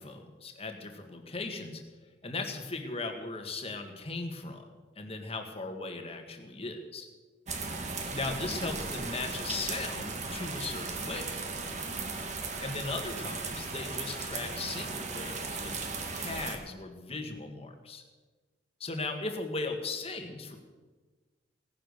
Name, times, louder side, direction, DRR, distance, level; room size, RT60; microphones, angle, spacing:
voice 1, 0.0-1.8 2.2-4.6 5.0-7.1 8.1-11.3 12.6-15.7 16.1-18.0 18.8-20.6, left 3 dB, 30° left, 5 dB, 1.8 m, -37 dB
sound 1, 7.5-16.6, right 4 dB, 40° right, 1.7 m, -37 dB
17.0 x 10.5 x 6.7 m, 1.3 s
head